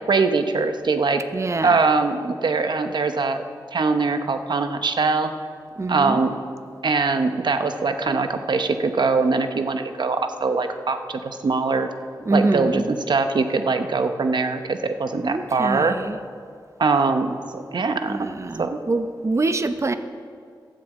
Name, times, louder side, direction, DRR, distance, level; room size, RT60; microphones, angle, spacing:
voice 1, 0.1-1.2 1.6-3.4 3.7-5.3 5.9-6.4 6.8-11.9 12.3-16.0 16.8-18.3 18.6-18.8, right 4 dB, 70° right, 8 dB, 0.9 m, -22 dB
voice 2, 1.3-1.7 5.8-6.2 12.3-12.9 15.2-16.2 18.1-20.0, right 2 dB, 35° right, 9 dB, 0.7 m, -25 dB
12.5 x 6.8 x 8.3 m, 2.2 s
wide cardioid pair, 75°, 8 cm